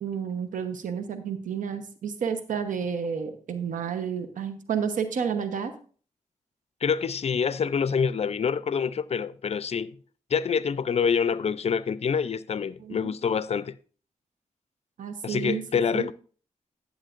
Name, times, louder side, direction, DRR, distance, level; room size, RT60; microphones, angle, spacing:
voice 1, 0.0-5.7 12.8-13.1 15.0-15.6 15.9-16.1, right 7 dB, 80° right, 1.0 m, -30 dB
voice 2, 6.8-9.9 10.3-13.8 15.2-16.1, left 6 dB, 50° left, 0.5 m, -26 dB
11.5 x 8.8 x 2.5 m
cardioid pair, 55°, 13 cm